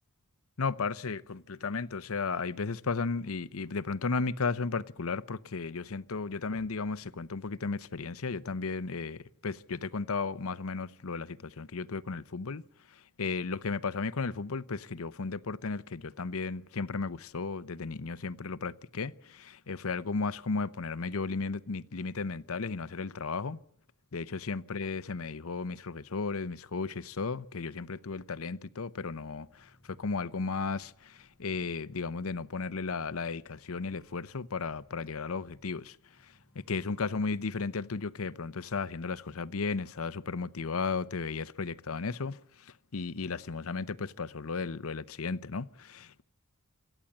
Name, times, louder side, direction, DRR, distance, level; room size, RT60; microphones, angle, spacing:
voice 1, 0.6-12.6 12.9-23.6 24.1-46.2, left 4 dB, 75° left, 0.8 m, -35 dB
sound 1, 29.1-37.1, equal, ahead, 7.0 m, -67 dB
27.0 x 13.0 x 8.7 m
head